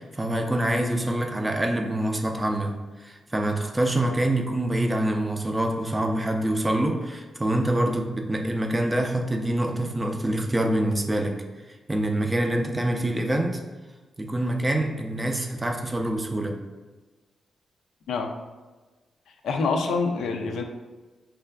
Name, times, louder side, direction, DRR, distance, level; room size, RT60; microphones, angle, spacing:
voice 1, 0.0-2.7 3.0-11.3 11.9-13.6 14.2-16.6, right 1 dB, 15° right, 3 dB, 0.4 m, -25 dB
voice 2, 19.4-20.6, left 4 dB, 85° left, 4 dB, 0.4 m, -26 dB
5.4 x 2.4 x 2.2 m, 1.2 s
cardioid pair, 125°, 0 cm